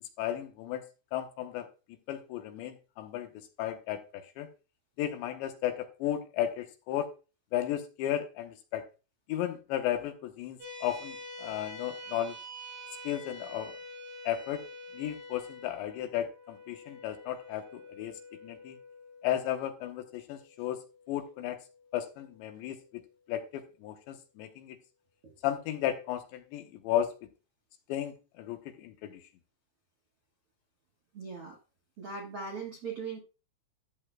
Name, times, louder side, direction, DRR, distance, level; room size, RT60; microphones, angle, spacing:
voice 1, 0.2-0.8 1.1-1.7 2.1-3.3 3.6-4.5 5.0-7.1 7.5-8.8 9.3-12.4 13.0-13.8 14.2-14.6 14.9-18.8 19.2-20.8 21.1-21.6 21.9-23.0 23.3-24.8 25.4-27.1 27.9-29.2, left 11 dB, 75° left, 7 dB, 3.0 m, -34 dB
sound 1, 10.6-23.2, left 1 dB, 50° right, 5.6 m, -48 dB
voice 2, 31.1-31.6 32.0-33.2, right 5 dB, 75° right, 0 dB, 1.3 m, -39 dB
13.5 x 8.1 x 2.2 m, 0.32 s
omnidirectional pair, 5.5 m